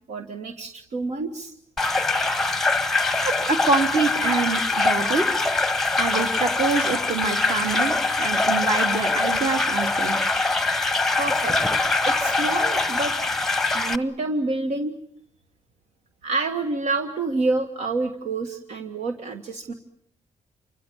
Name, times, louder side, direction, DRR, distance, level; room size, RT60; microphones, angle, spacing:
voice 1, 0.1-1.5 11.2-11.6 12.1-13.1 13.7-15.0 16.2-19.7, right 3 dB, 70° right, 7 dB, 1.7 m, -28 dB
sound 1, 1.8-14.0, left 3 dB, 5° left, 1.0 m, -23 dB
voice 2, 3.2-5.3 6.0-10.2, right 4 dB, 50° right, 5 dB, 3.3 m, -25 dB
29.0 x 25.5 x 7.1 m, 0.70 s
wide cardioid pair, 160°, 12 cm